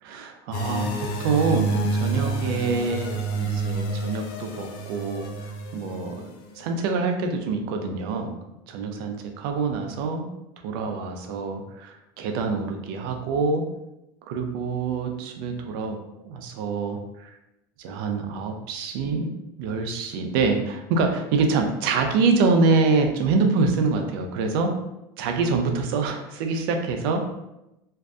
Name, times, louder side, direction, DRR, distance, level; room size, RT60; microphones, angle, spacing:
voice 1, 0.0-5.3 5.7-8.4 8.7-10.3 10.6-13.6 14.3-16.0 16.2-17.3 17.8-19.3 19.6-24.7 25.2-27.3, right 4 dB, 75° right, 4 dB, 0.4 m, -25 dB
sound 1, 0.5-6.4, right 2 dB, 75° left, 0.5 m, -29 dB
2.6 x 2.0 x 2.4 m, 0.90 s
supercardioid pair, 105°, 12 cm